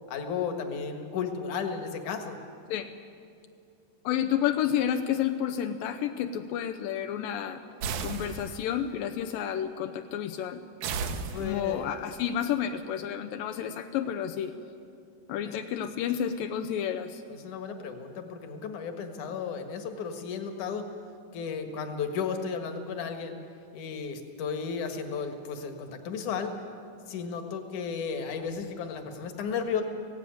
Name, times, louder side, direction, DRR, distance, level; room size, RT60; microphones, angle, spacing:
voice 1, 0.1-2.4 11.3-11.9 15.4-15.6 17.3-20.9 21.3-23.4 23.7-26.5 27.1-29.8, left 6 dB, 65° left, 6 dB, 2.8 m, -34 dB
voice 2, 4.1-7.6 8.0-10.6 11.4-14.6 15.3-17.2, left 9 dB, 85° left, 7 dB, 2.5 m, -30 dB
sound 1, 7.8-8.8 10.8-11.9, right 5 dB, 70° right, 2.3 m, -34 dB
20.0 x 16.5 x 9.2 m, 2.5 s
omnidirectional pair, 3.9 m